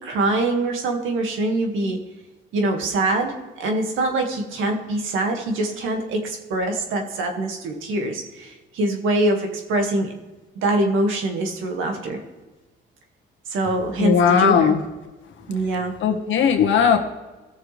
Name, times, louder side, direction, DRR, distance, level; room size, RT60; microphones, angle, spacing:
voice 1, 0.0-2.0 2.5-10.1 10.6-12.2 13.5-14.8 15.5-15.9, right 2 dB, 85° right, 3 dB, 2.0 m, -24 dB
voice 2, 14.0-14.8 16.0-17.0, left 7 dB, 75° left, 3 dB, 1.6 m, -17 dB
17.0 x 6.8 x 3.4 m, 1.2 s
cardioid pair, 90°, 20 cm